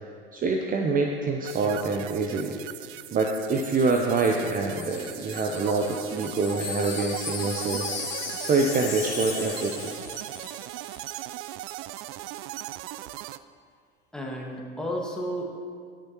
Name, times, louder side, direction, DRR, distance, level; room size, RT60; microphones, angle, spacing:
voice 1, 0.3-7.9 8.4-9.9, right 3 dB, 30° right, 2 dB, 0.8 m, -26 dB
sound 1, 1.4-13.4, right 15 dB, 50° right, 0.4 m, -39 dB
Wind chime, 3.4-10.6 10.9-11.1, left 5 dB, 90° left, 1.6 m, -37 dB
voice 2, 14.1-15.6, equal, ahead, -2 dB, 1.8 m, -32 dB
19.0 x 6.4 x 3.0 m, 2.2 s
hypercardioid pair, 80°, 29 cm